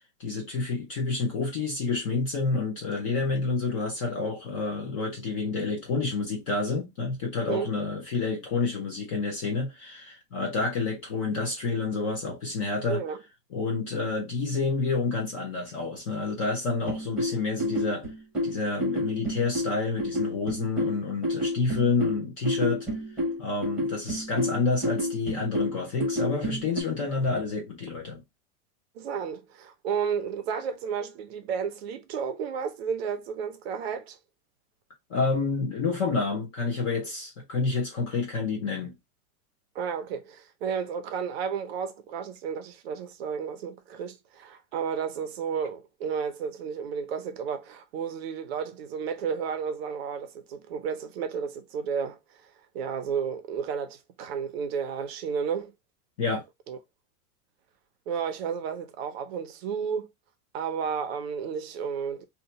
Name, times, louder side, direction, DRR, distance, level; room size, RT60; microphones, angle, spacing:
voice 1, 0.2-13.0 13.5-18.1 18.4-22.9 23.4-28.2 35.1-38.9 56.2-56.4, left 4 dB, 25° left, 0.4 m, -29 dB
voice 2, 12.9-13.2 29.0-34.2 39.7-52.2 52.7-55.7 56.7-56.8 58.1-60.1 60.5-62.3, right 6 dB, 45° right, 0.5 m, -32 dB
sound 1, 16.9-26.8, left 1 dB, ahead, 0.8 m, -29 dB
2.8 x 2.2 x 4.0 m
supercardioid pair, 175°, 43 cm